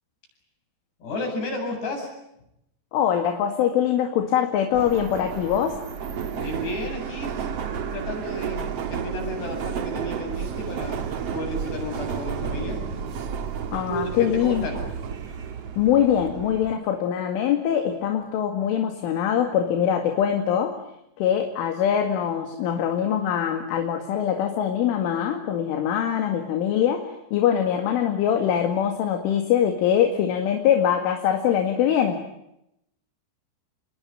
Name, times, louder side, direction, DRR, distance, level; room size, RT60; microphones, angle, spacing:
voice 1, 1.0-2.1 6.4-7.3 7.9-8.6 8.9-11.0 11.3-12.8 13.9-14.8, left 1 dB, 55° left, 3 dB, 9.9 m, -32 dB
voice 2, 2.9-5.8 13.7-14.7 15.8-20.8 21.2-32.2, left 9 dB, 75° left, 5 dB, 4.6 m, -23 dB
Subway metro underground, 4.7-16.8, right 7 dB, 90° right, 1.3 m, -32 dB
28.5 x 22.5 x 8.9 m, 0.82 s
omnidirectional pair, 5.7 m